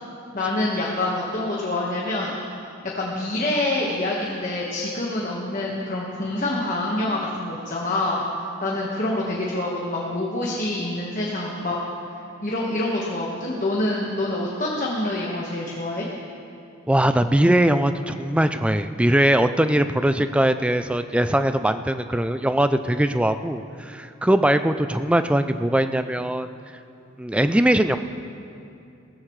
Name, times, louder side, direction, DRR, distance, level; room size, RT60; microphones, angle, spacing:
voice 1, 0.3-2.3 2.9-8.2 8.6-11.8 12.4-16.1, left 2 dB, 40° left, -3 dB, 1.4 m, -26 dB
voice 2, 16.9-26.5 27.2-28.0, right 1 dB, 5° right, 10 dB, 0.3 m, -21 dB
19.5 x 14.5 x 3.2 m, 2.6 s
head